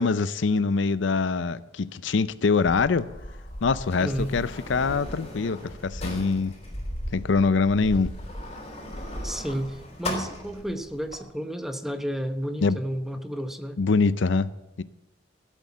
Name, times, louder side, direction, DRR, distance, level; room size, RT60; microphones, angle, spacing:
voice 1, 0.0-3.1 3.6-6.5 7.1-8.1 12.6-12.8 13.8-14.5 14.8-14.9, left 4 dB, 80° left, 0.5 m, -24 dB
Sliding door, 2.6-11.2, left 1 dB, 35° left, 3.8 m, -37 dB
voice 2, 4.0-4.3 9.2-13.8, equal, ahead, 0.9 m, -31 dB
15.5 x 8.2 x 7.3 m
head